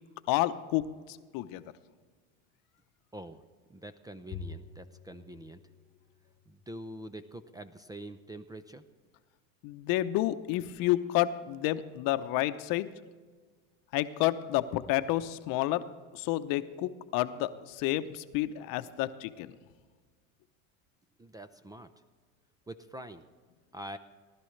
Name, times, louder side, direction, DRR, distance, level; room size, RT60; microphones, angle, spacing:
voice 1, 0.3-0.9 1.3-1.6 9.6-12.9 13.9-15.8 16.1-19.5, left 15 dB, 60° left, 12 dB, 0.8 m, -30 dB
voice 2, 3.7-5.6 6.5-8.8 21.2-21.9 22.7-23.2 23.7-24.0, right 1 dB, 10° right, 11 dB, 0.4 m, -45 dB
Bowed string instrument, 4.3-6.9, left 5 dB, 35° left, 1.0 m, -47 dB
19.0 x 12.0 x 3.2 m, 1.5 s
supercardioid pair, 110°, 40 cm